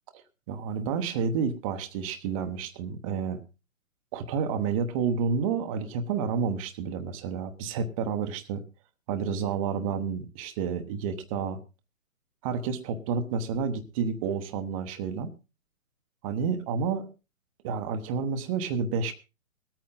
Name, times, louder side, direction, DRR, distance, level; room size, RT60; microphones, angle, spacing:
voice 1, 0.5-3.4 4.1-8.6 9.1-11.6 12.4-15.3 16.2-17.1 17.6-19.1, right 6 dB, 25° right, 8 dB, 0.9 m, -30 dB
20.5 x 8.9 x 3.7 m, 0.29 s
hypercardioid pair, 135°, 42 cm